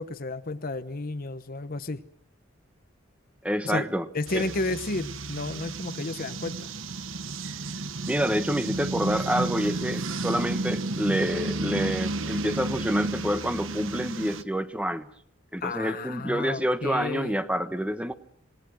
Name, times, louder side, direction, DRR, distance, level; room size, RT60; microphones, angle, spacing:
voice 1, 0.0-2.0 3.6-3.9 4.1-6.7 15.6-17.4, left 2 dB, 45° left, 1.0 m, -32 dB
voice 2, 3.4-4.1 4.3-4.5 8.0-15.1 15.5-18.1, equal, 5° right, 1.2 m, -28 dB
sound 1, 4.3-14.4, right 2 dB, 80° right, 1.2 m, -32 dB
27.5 x 19.0 x 6.3 m
head